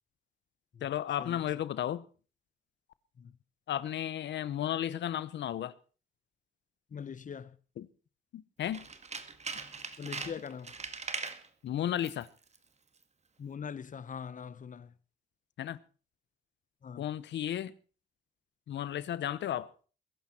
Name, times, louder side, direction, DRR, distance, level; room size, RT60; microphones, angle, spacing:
voice 1, 0.8-2.1 3.7-5.7 7.8-7.9 8.3-8.8 11.6-12.3 15.6-15.8 17.0-17.7 18.7-19.7, left 11 dB, 75° left, 1.0 m, -34 dB
voice 2, 6.9-7.6 10.0-10.7 13.4-14.9 16.8-17.0, left 7 dB, 45° left, 1.0 m, -42 dB
Tools, 8.6-11.5 12.0-12.3 12.5-12.6, right 4 dB, 35° right, 1.9 m, -40 dB
22.0 x 11.5 x 4.4 m
cardioid pair, 80°, 19 cm